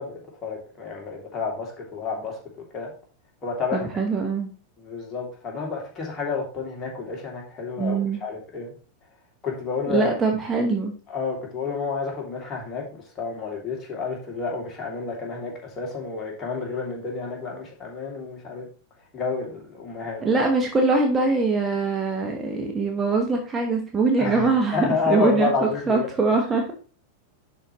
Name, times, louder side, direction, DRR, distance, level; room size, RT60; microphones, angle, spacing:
voice 1, 0.0-2.4 2.7-2.9 3.4-3.9 4.8-8.7 9.4-10.1 11.1-18.7 19.1-20.4 24.2-26.1, left 4 dB, 25° left, -1 dB, 2.7 m, -30 dB
voice 2, 3.7-4.5 7.8-8.2 9.9-10.9 20.2-25.5 25.9-26.6, right 3 dB, 15° right, 2 dB, 1.2 m, -22 dB
11.0 x 4.6 x 3.1 m, 0.38 s
figure-of-eight pair, 90°, 0 cm